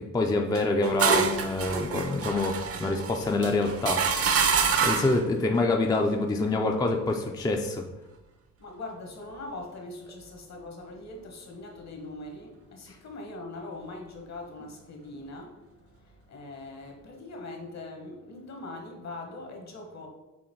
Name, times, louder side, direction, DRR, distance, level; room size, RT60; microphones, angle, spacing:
voice 1, 0.1-4.0 4.4-7.8, left 2 dB, 15° left, 2 dB, 0.3 m, -26 dB
sound 1, 0.5-5.2, right 6 dB, 50° right, 0.5 m, -27 dB
voice 2, 8.6-15.5 16.3-20.1, left 2 dB, 60° left, 2 dB, 1.3 m, -41 dB
6.3 x 3.4 x 4.5 m, 1.1 s
wide cardioid pair, 175°, 31 cm